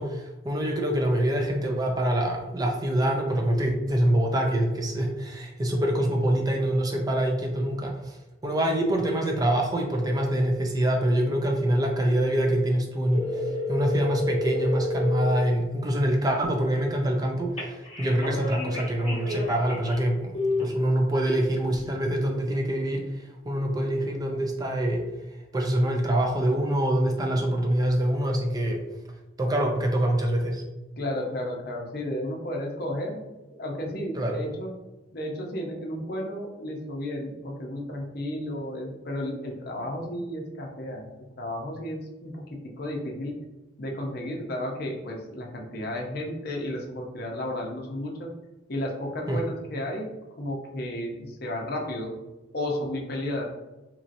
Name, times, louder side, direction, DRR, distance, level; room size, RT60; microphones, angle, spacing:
voice 1, 0.0-8.2 8.4-13.4 13.7-20.3 20.6-25.0 25.5-28.8 29.4-30.6 34.1-34.4 49.3-49.4, right 1 dB, 20° right, 1 dB, 0.3 m, -25 dB
sound 1, 13.1-15.4 17.6-20.0 20.3-20.6, left 2 dB, 30° left, 1.0 m, -30 dB
voice 2, 31.0-33.2 33.6-34.7 35.1-42.3 42.8-43.3 43.8-48.3 48.7-50.1 50.4-52.2 52.5-53.4, left 1 dB, 55° left, 0 dB, 0.6 m, -33 dB
3.0 x 2.7 x 2.5 m, 1.1 s
head